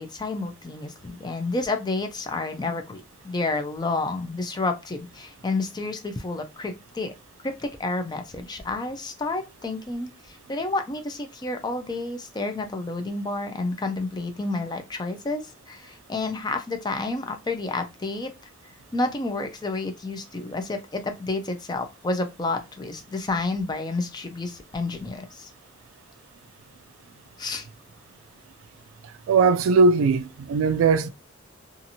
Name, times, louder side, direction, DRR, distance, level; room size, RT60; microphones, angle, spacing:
voice 1, 0.0-7.1 7.4-15.4 15.7-18.3 18.9-25.5 27.4-27.7, left 3 dB, 20° left, 0.4 m, -30 dB
voice 2, 29.3-31.1, right 4 dB, 90° right, 0.3 m, -19 dB
2.8 x 2.5 x 2.7 m
head